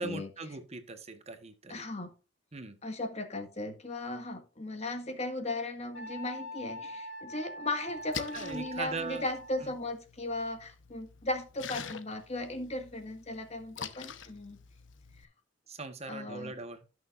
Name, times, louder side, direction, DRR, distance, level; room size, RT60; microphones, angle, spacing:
voice 1, 0.0-1.9 2.5-2.8 8.3-9.3 9.6-9.7 15.7-16.8, right 3 dB, 35° right, 1.2 m, -40 dB
voice 2, 1.7-2.1 2.8-14.6 16.1-16.5, left 2 dB, 35° left, 1.8 m, -37 dB
Wind instrument woodwind instrument, 5.9-9.7, equal, 65° left, 3.2 m, -43 dB
Splash splatter, 7.9-15.2, left 6 dB, 80° left, 1.0 m, -46 dB
17.0 x 6.4 x 2.5 m
head